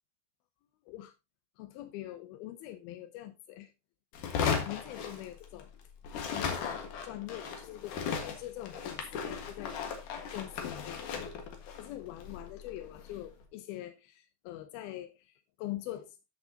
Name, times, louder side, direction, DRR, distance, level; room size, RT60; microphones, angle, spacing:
voice 1, 1.6-3.7 4.6-5.7 6.3-6.8 7.0-9.8 10.3-11.0 11.8-16.1, left 14 dB, 85° left, 2.7 m, -43 dB
sound 1, 4.1-5.8 6.0-13.3, left 6 dB, 65° left, 2.9 m, -36 dB
14.0 x 6.7 x 2.8 m
omnidirectional pair, 4.3 m